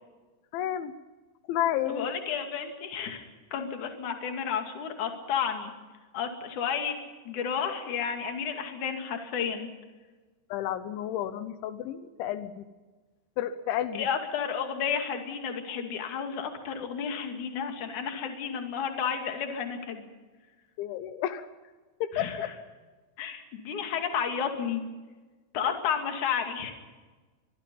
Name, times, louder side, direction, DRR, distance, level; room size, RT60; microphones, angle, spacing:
voice 1, 0.5-0.9 1.5-2.1 10.5-12.7 13.4-14.1 20.8-21.5 22.0-22.5, left 11 dB, 85° left, 11 dB, 3.4 m, -31 dB
voice 2, 1.9-5.7 6.1-7.0 7.2-9.7 14.0-20.1 22.1-22.5 23.2-24.8 25.5-26.7, left 7 dB, 50° left, 4 dB, 3.4 m, -32 dB
24.0 x 22.5 x 5.5 m, 1.3 s
omnidirectional pair, 5.3 m